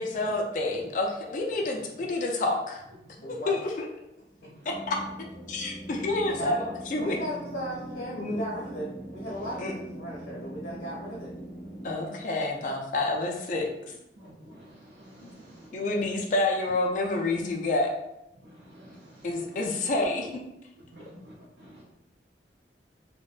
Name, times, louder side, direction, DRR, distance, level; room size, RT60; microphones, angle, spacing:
voice 1, 0.0-2.8 3.3-3.7 4.9-5.0 5.5-7.2 8.2-8.4 9.6-9.7 11.8-13.9 15.7-17.9 19.2-20.4, left 2 dB, 45° left, 1 dB, 0.3 m, -28 dB
voice 2, 3.2-3.5 4.4-4.5 6.2-6.6 7.0-11.3, equal, 65° left, -6 dB, 0.8 m, -36 dB
sound 1, 4.7-12.0, right 1 dB, 5° left, 0.6 m, -42 dB
voice 3, 14.2-14.6 15.0-15.6 18.7-19.2 20.9-21.8, equal, 65° right, -4 dB, 0.5 m, -50 dB
2.5 x 2.1 x 2.3 m, 0.87 s
head